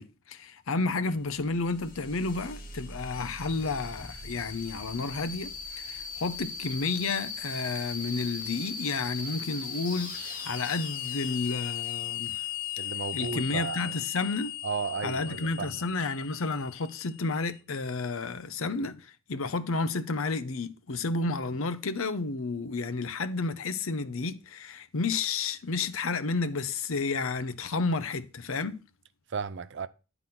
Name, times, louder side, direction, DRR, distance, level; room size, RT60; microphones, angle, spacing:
voice 1, 0.0-12.4 13.1-14.6 15.0-28.8, left 3 dB, 75° left, 0.7 m, -31 dB
sound 1, 1.1-17.4, left 7 dB, 40° left, 1.3 m, -38 dB
voice 2, 12.8-13.9 14.6-15.7 29.3-29.9, right 5 dB, 55° right, 0.5 m, -34 dB
9.1 x 4.0 x 5.7 m
head